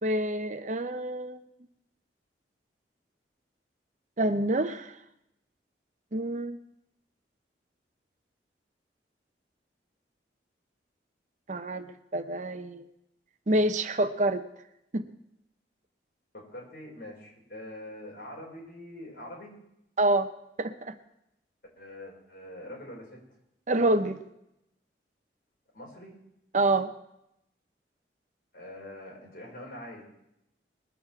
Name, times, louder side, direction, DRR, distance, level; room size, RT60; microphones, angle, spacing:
voice 1, 0.0-1.4 4.2-5.0 6.1-6.6 11.5-12.8 13.5-14.4 14.9-15.0 20.0-20.3 20.6-20.9 23.7-24.2 26.5-26.9, right 1 dB, 40° right, 9 dB, 0.8 m, -27 dB
voice 2, 16.3-19.5 21.8-23.2 25.7-26.1 28.5-30.0, left 1 dB, 55° left, -2 dB, 5.0 m, -44 dB
20.5 x 7.0 x 7.5 m, 0.82 s
head